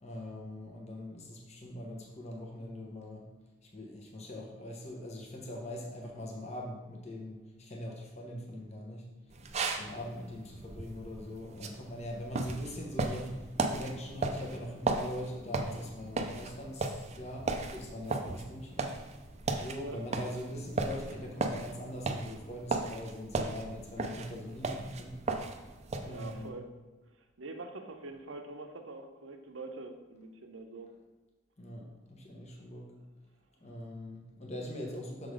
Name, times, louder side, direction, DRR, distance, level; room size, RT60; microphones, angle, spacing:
voice 1, 0.0-3.3 3.6-9.1 9.8-19.0 19.5-25.2 26.0-26.5 31.6-32.9 33.6-35.3, left 1 dB, 35° left, -1 dB, 1.1 m, -42 dB
sound 1, 9.3-26.5, right 3 dB, 35° right, 0.5 m, -36 dB
voice 2, 26.1-26.7 27.1-30.9, right 2 dB, 80° right, 5 dB, 0.8 m, -45 dB
6.4 x 3.9 x 4.9 m, 1.2 s
head